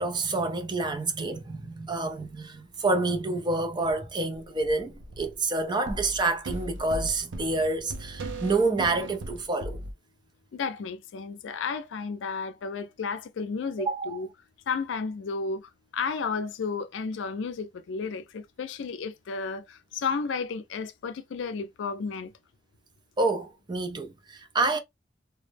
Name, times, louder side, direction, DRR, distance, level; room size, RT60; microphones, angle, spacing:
voice 1, 0.0-9.8 13.8-14.2 23.2-24.8, right 3 dB, 25° right, 0.4 m, -28 dB
sound 1, 3.9-4.0 4.3-5.4 5.9-9.9, right 1 dB, 80° right, 0.5 m, -38 dB
voice 2, 10.5-14.3 14.7-15.6 15.9-22.3, left 5 dB, 80° left, 0.4 m, -32 dB
2.1 x 2.0 x 3.2 m
head